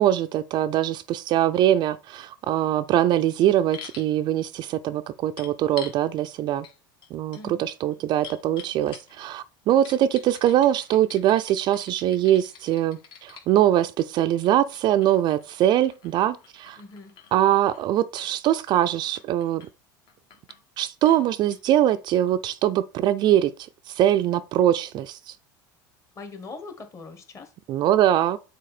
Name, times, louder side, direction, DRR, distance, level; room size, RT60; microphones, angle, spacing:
voice 1, 0.0-6.7 7.1-16.8 17.3-19.6 20.8-23.5 23.9-25.4 27.7-28.4, right 12 dB, 45° right, 0.4 m, -22 dB
sound 1, 3.7-4.1 5.4-6.0 6.6-6.8 7.0-9.3 9.8-13.5 14.4-17.9 18.2-18.8 19.2-19.7 20.1-20.6 21.0-21.2 21.5-21.6, left 7 dB, 50° left, 1.3 m, -46 dB
voice 2, 16.8-17.1 26.1-27.5, left 3 dB, 30° left, 1.5 m, -41 dB
6.4 x 4.0 x 4.1 m
supercardioid pair, 115°, 11 cm